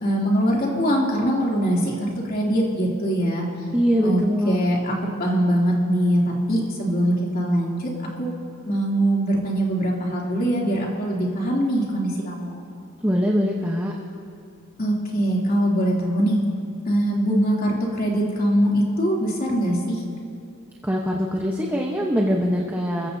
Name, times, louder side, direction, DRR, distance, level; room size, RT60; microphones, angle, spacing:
voice 1, 0.0-3.5 4.0-4.2 4.4-7.9 8.2-8.3 8.6-12.6 14.8-16.4 16.9-20.0, right 1 dB, 45° left, -3 dB, 2.9 m, -22 dB
voice 2, 3.7-4.6 13.0-13.9 20.8-23.1, equal, 10° right, -1 dB, 1.0 m, -22 dB
29.5 x 15.5 x 2.8 m, 2.3 s
head